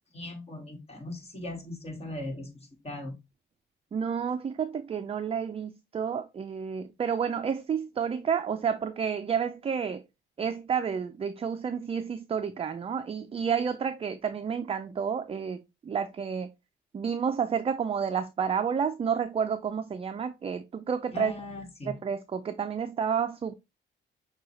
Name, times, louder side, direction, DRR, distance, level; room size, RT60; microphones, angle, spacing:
voice 1, 0.1-3.1 21.1-22.0, left 2 dB, 30° left, 1.7 m, -39 dB
voice 2, 3.9-10.0 10.4-16.5 16.9-21.3 21.9-23.6, right 7 dB, 30° right, 0.4 m, -30 dB
6.2 x 2.3 x 3.0 m
cardioid pair, 90°, 20 cm